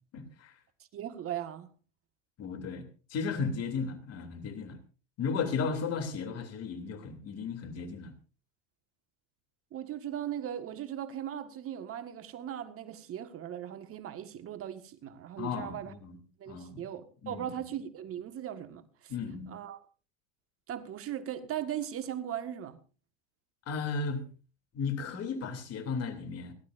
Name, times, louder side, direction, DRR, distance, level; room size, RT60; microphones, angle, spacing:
voice 1, 0.1-0.5 2.4-4.8 5.2-8.1 15.4-16.2 16.5-16.8 17.2-17.6 19.1-19.5 23.7-24.2 24.7-26.5, left 5 dB, 45° left, 3.0 m, -35 dB
voice 2, 0.9-1.7 9.7-15.9 16.4-19.1 19.5-19.8 20.7-22.8, right 10 dB, 40° right, 1.6 m, -38 dB
29.0 x 12.0 x 2.6 m
hypercardioid pair, 90°, 33 cm